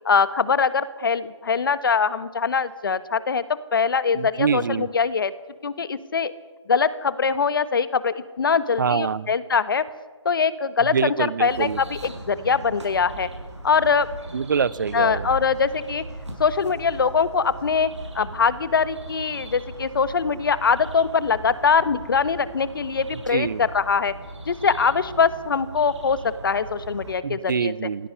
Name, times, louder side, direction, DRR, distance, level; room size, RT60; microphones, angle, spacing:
voice 1, 0.0-3.4 3.7-5.3 5.6-6.3 6.7-9.8 10.2-11.1 11.4-11.7 12.3-13.3 13.6-14.1 14.9-16.0 16.4-17.9 18.1-24.1 24.5-27.7, left 5 dB, 50° left, 15 dB, 1.4 m, -22 dB
voice 2, 4.1-4.9 8.8-9.3 10.8-11.8 14.3-15.3 23.1-23.6 27.2-28.1, right 6 dB, 40° right, 20 dB, 0.6 m, -25 dB
sound 1, 11.5-27.1, right 1 dB, 75° right, 6.8 m, -39 dB
19.0 x 16.5 x 9.7 m, 1.3 s
figure-of-eight pair, 150°, 15 cm